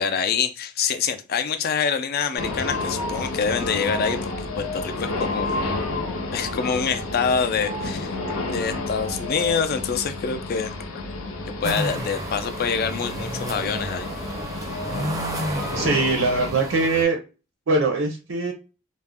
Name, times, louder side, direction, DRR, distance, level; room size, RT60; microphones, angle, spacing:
voice 1, 0.0-5.9 6.3-10.7 11.6-14.1, left 6 dB, 50° left, 9 dB, 0.4 m, -26 dB
sound 1, 2.4-16.5, left 2 dB, 85° left, 0.6 m, -30 dB
sound 2, 11.6-17.0, right 1 dB, 15° right, 0.5 m, -31 dB
voice 2, 15.7-17.2 17.7-18.5, right 3 dB, 75° right, 2 dB, 0.6 m, -22 dB
2.4 x 2.0 x 3.4 m, 0.31 s
head